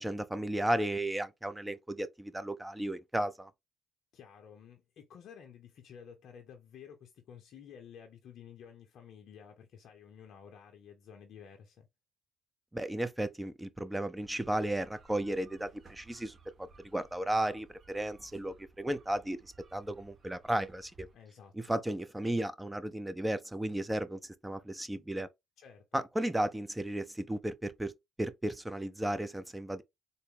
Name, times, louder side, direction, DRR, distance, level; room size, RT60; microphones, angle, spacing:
voice 1, 0.0-3.5 12.7-21.1 21.5-25.3 25.9-27.9 28.2-29.8, right 1 dB, 10° right, 0.6 m, -34 dB
voice 2, 4.1-11.9 21.1-21.7 25.6-25.9, left 7 dB, 65° left, 0.6 m, -52 dB
sound 1, 14.2-21.1, right 4 dB, 50° right, 1.4 m, -60 dB
3.9 x 2.1 x 3.6 m
hypercardioid pair, 60°, 0 cm